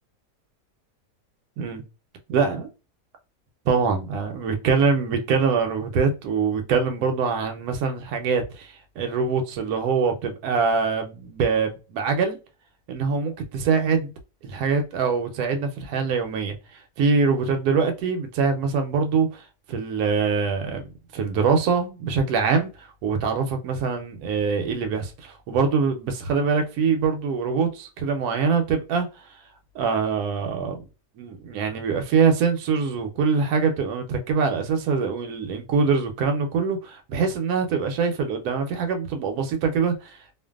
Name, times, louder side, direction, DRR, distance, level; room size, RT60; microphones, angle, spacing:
voice 1, 2.3-2.7 3.7-12.4 12.9-14.1 14.4-19.4 19.7-20.8 21.1-29.1 29.7-30.8 31.2-40.3, right 5 dB, 75° right, 1.1 m, -24 dB
2.5 x 2.4 x 2.3 m
omnidirectional pair, 1.7 m